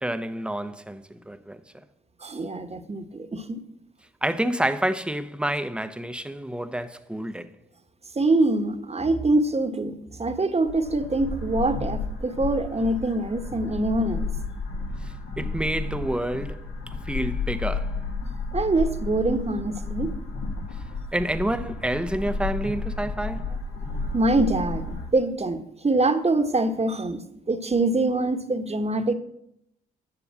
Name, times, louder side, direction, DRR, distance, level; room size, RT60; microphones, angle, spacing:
voice 1, 0.0-1.6 4.2-7.5 15.4-16.6 17.1-18.0 21.1-23.5, right 1 dB, 5° right, 1.0 m, -28 dB
voice 2, 2.2-3.6 8.1-14.3 18.5-20.1 23.9-29.1, right 2 dB, 30° right, 1.5 m, -24 dB
sound 1, 10.7-25.1, left 3 dB, 65° left, 2.2 m, -32 dB
11.0 x 6.9 x 7.3 m
hypercardioid pair, 45°, 21 cm